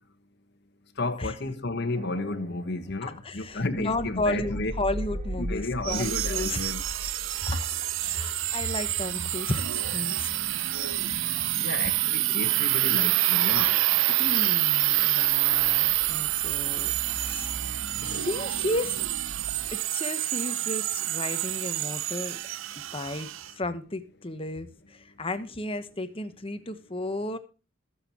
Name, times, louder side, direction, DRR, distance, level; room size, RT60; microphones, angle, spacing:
voice 1, 1.0-4.7 5.4-6.8 11.6-13.7, left 2 dB, 55° left, 1.4 m, -32 dB
sound 1, 1.9-19.7, equal, 40° right, 1.5 m, -41 dB
voice 2, 3.2-6.9 7.5-7.7 8.1-10.3 14.2-17.6 18.0-19.0 19.7-22.4 22.9-23.3 23.6-27.4, left 2 dB, 25° left, 1.1 m, -33 dB
sound 2, 5.8-23.5, right 15 dB, 70° right, 0.5 m, -27 dB
21.5 x 7.3 x 3.0 m
head